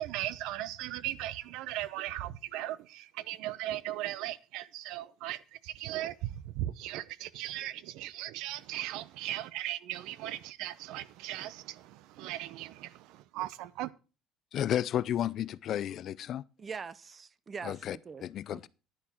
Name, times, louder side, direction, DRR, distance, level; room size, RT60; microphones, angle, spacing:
voice 1, 0.0-13.9, right 14 dB, 70° right, 0.7 m, -38 dB
voice 2, 14.5-16.4 17.6-18.7, left 11 dB, 45° left, 0.4 m, -32 dB
voice 3, 16.6-18.2 18.5-18.7, right 5 dB, 25° right, 0.6 m, -43 dB
10.5 x 10.5 x 4.5 m
cardioid pair, 150°, 0 cm